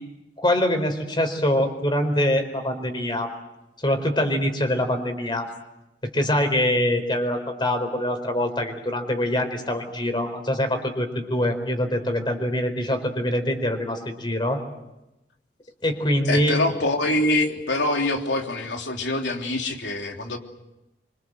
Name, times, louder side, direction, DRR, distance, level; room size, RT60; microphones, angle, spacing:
voice 1, 0.4-3.3 3.8-5.5 6.1-14.6 15.8-16.6, left 1 dB, 25° left, 6 dB, 4.4 m, -24 dB
voice 2, 16.3-20.4, left 2 dB, 85° left, 3 dB, 3.3 m, -25 dB
26.5 x 25.5 x 7.7 m, 0.94 s
head